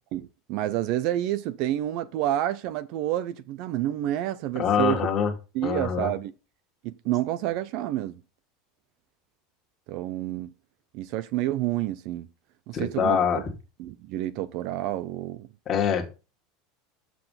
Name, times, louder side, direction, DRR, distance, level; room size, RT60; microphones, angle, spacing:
voice 1, 0.1-5.0 5.5-6.3 6.8-8.1 9.9-10.5 10.9-12.3 12.7-13.4 13.8-15.5, right 13 dB, 45° right, 0.5 m, -29 dB
voice 2, 4.6-5.3 5.6-6.1 12.7-13.5 15.7-16.1, left 7 dB, 25° left, 1.8 m, -24 dB
6.9 x 6.1 x 5.6 m
supercardioid pair, 170°, 0 cm